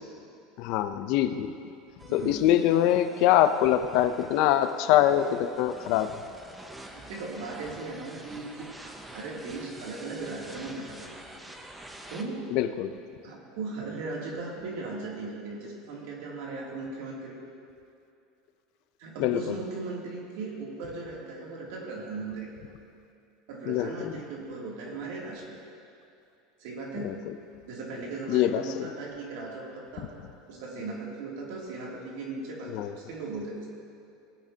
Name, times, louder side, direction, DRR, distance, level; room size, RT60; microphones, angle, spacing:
voice 1, 0.6-1.5 2.1-6.1 12.5-12.9 19.2-19.4 23.7-24.1 27.0-27.1 28.3-28.9 32.7-32.9, left 11 dB, 55° left, 10 dB, 0.6 m, -24 dB
sound 1, 2.0-12.2, right 1 dB, 5° right, 0.8 m, -47 dB
voice 2, 6.8-11.1 12.1-12.5 13.2-17.3 19.0-22.5 23.5-25.5 26.6-27.2 27.7-30.1 30.5-33.7, right 3 dB, 70° right, -3 dB, 2.7 m, -37 dB
19.0 x 8.7 x 2.9 m, 2.6 s
supercardioid pair, 150°, 0 cm